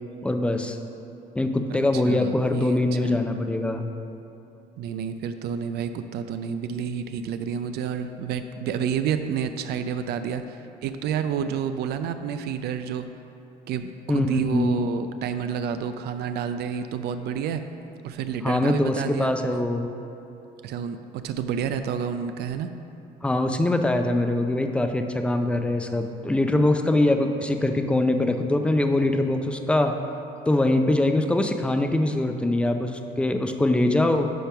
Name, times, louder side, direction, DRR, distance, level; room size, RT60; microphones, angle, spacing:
voice 1, 0.2-0.8 1.3-3.9 14.1-14.8 18.4-19.9 23.2-30.0 30.5-34.3, left 1 dB, 5° left, 6 dB, 0.5 m, -23 dB
voice 2, 1.9-3.2 4.8-13.1 13.7-17.6 18.0-19.6 20.6-22.7, right 7 dB, 75° right, 9 dB, 0.4 m, -30 dB
10.0 x 3.4 x 5.8 m, 2.8 s
cardioid pair, 110°, 17 cm